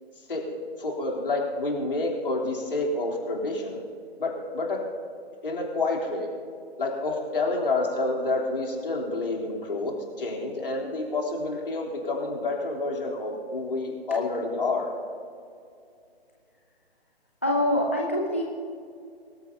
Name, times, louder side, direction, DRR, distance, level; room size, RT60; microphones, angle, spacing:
voice 1, 0.8-3.8 4.2-4.8 5.4-6.3 6.8-14.9, left 2 dB, 60° left, -1 dB, 3.4 m, -28 dB
voice 2, 17.4-18.4, left 1 dB, 15° left, -1 dB, 0.4 m, -24 dB
24.0 x 13.0 x 2.8 m, 2.4 s
figure-of-eight pair, 135°, 32 cm